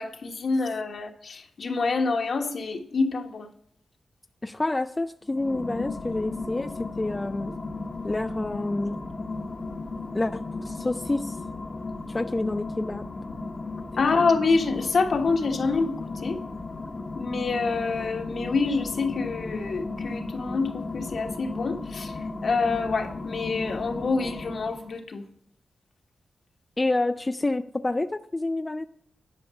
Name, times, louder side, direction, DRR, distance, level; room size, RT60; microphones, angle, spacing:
voice 1, 0.0-3.5 14.0-16.4 17.1-22.1 22.4-25.2, left 4 dB, 65° left, 1.4 m, -26 dB
voice 2, 4.4-7.5 8.0-9.0 10.1-11.4 12.1-13.0 26.8-28.9, left 2 dB, 25° left, 0.4 m, -28 dB
sound 1, 5.2-25.0, left 3 dB, 40° left, 1.0 m, -35 dB
11.5 x 5.2 x 5.7 m
cardioid pair, 80°, 0 cm